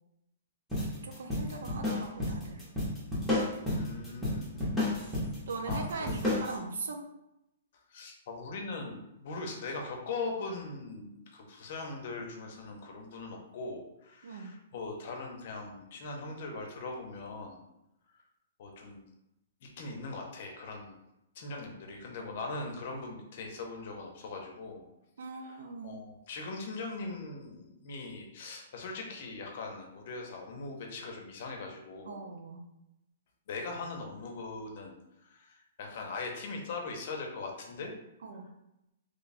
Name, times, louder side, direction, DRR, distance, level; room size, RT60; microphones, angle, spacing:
sound 1, 0.7-6.6, left 1 dB, ahead, 0.9 m, -32 dB
voice 1, 1.0-2.7 3.8-3.9 5.5-7.0 14.2-14.6 25.2-26.0 32.1-32.7 38.2-38.5, right 3 dB, 85° right, 4 dB, 0.7 m, -40 dB
voice 2, 3.7-4.5 5.7-6.1 7.9-17.6 18.6-19.0 19.6-21.0 21.4-24.8 25.4-25.6 25.8-32.2 33.5-37.9, left 3 dB, 40° left, 2 dB, 0.7 m, -40 dB
3.1 x 2.3 x 4.0 m, 0.88 s
hypercardioid pair, 175°, 0 cm